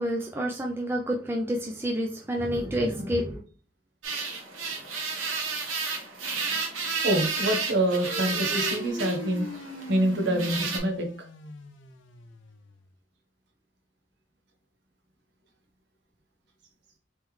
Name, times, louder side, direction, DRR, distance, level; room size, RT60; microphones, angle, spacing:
voice 1, 0.0-3.4, equal, 10° right, 0 dB, 0.3 m, -28 dB
sound 1, 4.0-10.8, right 4 dB, 90° right, 0.9 m, -32 dB
voice 2, 7.0-9.5 9.9-11.1, right 1 dB, 60° right, 4 dB, 0.9 m, -26 dB
sound 2, 7.9-12.8, left 2 dB, 70° left, 0.6 m, -40 dB
3.6 x 3.1 x 3.2 m, 0.40 s
head